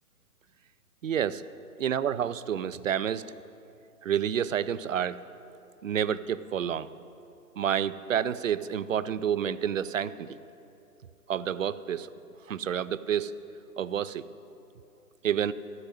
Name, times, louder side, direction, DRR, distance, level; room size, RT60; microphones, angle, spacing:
voice 1, 1.0-1.5 1.8-3.2 4.0-5.2 5.8-6.9 7.6-10.4 11.3-12.1 12.5-13.4 13.8-14.3 15.2-15.5, right 9 dB, 55° right, 16 dB, 0.5 m, -29 dB
13.5 x 6.3 x 9.7 m, 2.8 s
figure-of-eight pair, 135°, 47 cm